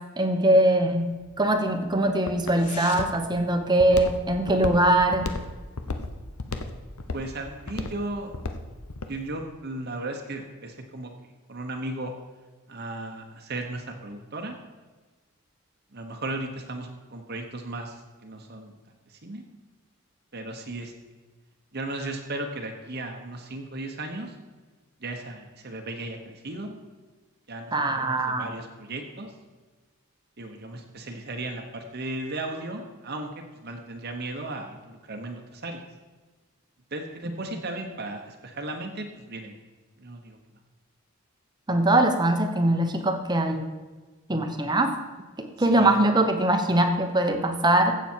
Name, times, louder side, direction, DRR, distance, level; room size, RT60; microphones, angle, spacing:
voice 1, 0.2-1.1 1.4-5.3 27.7-28.5 41.7-43.6 44.3-44.9 45.4-47.9, right 1 dB, 20° right, 5 dB, 0.9 m, -22 dB
Walk footsteps, 1.0-9.2, left 3 dB, 85° left, 0.9 m, -34 dB
voice 2, 7.1-8.3 9.1-11.1 11.5-12.1 12.7-14.6 15.9-18.7 19.1-19.4 20.3-20.9 21.7-24.4 25.0-26.8 27.5-29.3 30.4-33.3 33.6-35.8 36.9-39.5 40.0-40.4 45.6-46.0, right 2 dB, 45° right, 3 dB, 1.0 m, -36 dB
15.5 x 7.1 x 4.5 m, 1.3 s
head